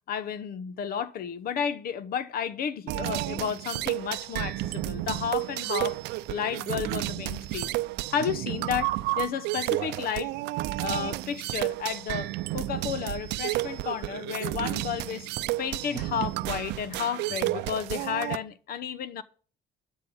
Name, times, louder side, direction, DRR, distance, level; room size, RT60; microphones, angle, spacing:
voice 1, 0.1-6.0 6.3-7.7 8.1-10.3 10.8-15.3 15.6-19.2, left 8 dB, 60° left, 1.0 m, -32 dB
sound 1, 2.9-18.4, right 18 dB, 85° right, 0.5 m, -31 dB
12.5 x 5.5 x 7.1 m
cardioid pair, 110°, 17 cm